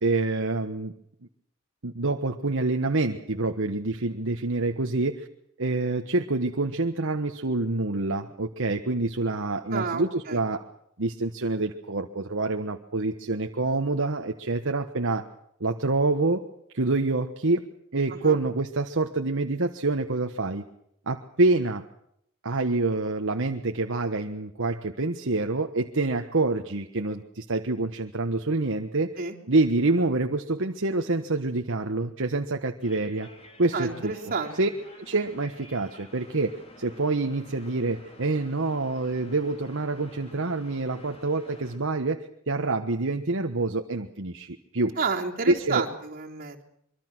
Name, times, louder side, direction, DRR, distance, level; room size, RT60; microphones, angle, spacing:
voice 1, 0.0-0.9 1.8-5.3 5.6-10.6 11.0-15.3 15.6-16.4 16.7-17.7 17.9-20.6 21.1-21.8 22.4-29.2 29.5-33.3 33.6-34.1 34.5-34.7 35.0-45.0 45.5-45.9, right 2 dB, 60° right, 5 dB, 1.3 m, -26 dB
voice 2, 9.7-10.4 18.1-18.4 29.2-29.3 33.7-34.6 45.0-46.6, right 4 dB, 45° right, -1 dB, 3.6 m, -30 dB
sound 1, 32.8-41.8, left 1 dB, 30° left, 4.1 m, -50 dB
25.0 x 24.0 x 6.2 m, 0.72 s
head